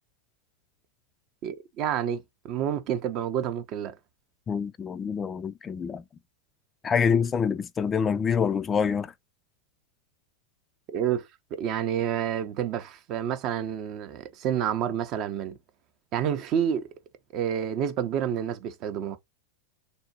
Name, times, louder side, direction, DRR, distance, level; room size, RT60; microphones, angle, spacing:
voice 1, 1.4-4.0 10.9-15.6 16.1-16.9 17.3-19.2, right 9 dB, 40° right, 0.5 m, -29 dB
voice 2, 4.5-6.0 6.8-9.1, left 6 dB, 20° left, 0.3 m, -26 dB
3.7 x 2.1 x 2.6 m
figure-of-eight pair, 90°, 0 cm